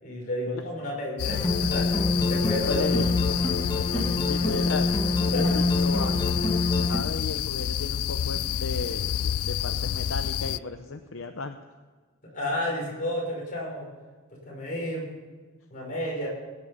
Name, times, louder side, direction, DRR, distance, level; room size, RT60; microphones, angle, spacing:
voice 1, 0.0-2.9 5.3-5.6 12.3-13.9 14.5-15.1 15.7-16.3, left 1 dB, 35° left, -3 dB, 5.6 m, -31 dB
sound 1, 1.2-10.6, left 10 dB, 85° left, 0.4 m, -29 dB
sound 2, 1.3-7.0, left 2 dB, 20° left, 1.7 m, -26 dB
voice 2, 2.6-3.2 3.5-4.9 5.3-6.2 6.9-11.6, left 4 dB, 65° left, 6 dB, 0.7 m, -34 dB
18.5 x 9.9 x 5.6 m, 1.4 s
head